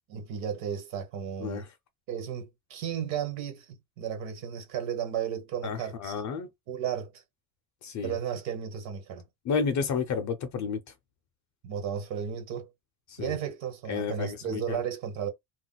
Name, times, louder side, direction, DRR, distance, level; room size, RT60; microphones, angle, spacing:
voice 1, 0.1-1.6 2.1-6.2 6.7-7.2 8.0-9.2 11.6-12.7 13.2-15.3, right 8 dB, 65° right, 1.3 m, -34 dB
voice 2, 5.6-6.5 7.8-8.1 9.5-10.8 13.1-13.4 13.9-14.8, left 5 dB, 40° left, 0.4 m, -31 dB
2.4 x 2.0 x 3.8 m
cardioid pair, 140°, 49 cm